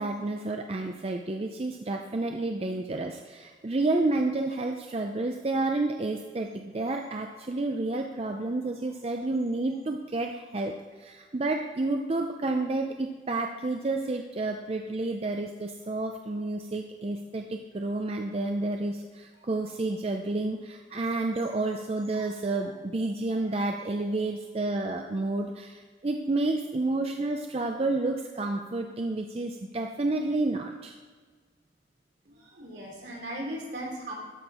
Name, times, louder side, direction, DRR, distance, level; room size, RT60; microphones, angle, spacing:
voice 1, 0.0-30.9, right 2 dB, 35° right, 3 dB, 0.5 m, -30 dB
voice 2, 32.2-34.1, right 1 dB, 75° right, -3 dB, 2.9 m, -37 dB
13.0 x 4.4 x 5.0 m, 1.5 s
head